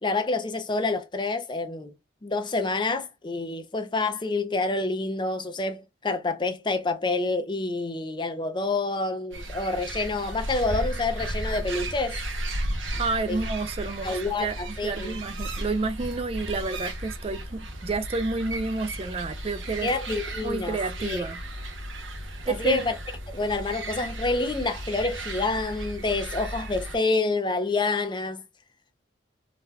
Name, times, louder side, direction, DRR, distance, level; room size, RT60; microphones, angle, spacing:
voice 1, 0.0-1.9 2.2-12.2 13.3-13.4 14.0-15.2 19.8-21.2 22.5-22.9 23.3-28.4, left 3 dB, 25° left, 0.5 m, -28 dB
sound 1, 9.3-27.0, right 1 dB, 80° right, 1.0 m, -35 dB
voice 2, 13.0-14.6 14.8-19.9 20.4-21.4 22.5-22.8, right 3 dB, 30° right, 0.3 m, -30 dB
4.0 x 2.7 x 2.2 m
head